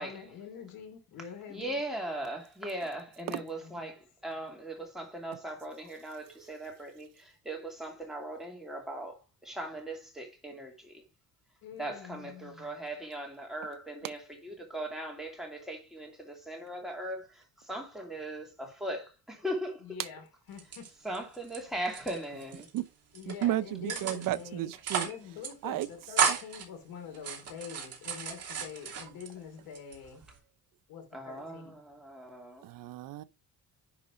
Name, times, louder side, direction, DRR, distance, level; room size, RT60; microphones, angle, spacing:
voice 1, 0.0-1.8 3.3-3.9 11.6-12.7 19.8-20.9 23.1-24.7 25.0-30.2 30.9-31.8, left 7 dB, 70° left, 3.0 m, -46 dB
voice 2, 1.5-10.9 11.8-19.8 21.0-22.7 31.1-32.6, right 1 dB, ahead, 2.7 m, -39 dB
sound 1, 20.5-21.6 21.8-22.8 23.1-23.5 23.9-24.4 24.7-25.2 25.4-25.5 25.8-26.6 27.1-29.3 29.7-30.4, right 6 dB, 45° right, 2.9 m, -33 dB
voice 3, 23.3-25.1 25.6-25.9 26.3-26.4 32.6-33.2, right 14 dB, 65° right, 0.6 m, -33 dB
10.5 x 4.0 x 5.0 m
cardioid pair, 150°, 36 cm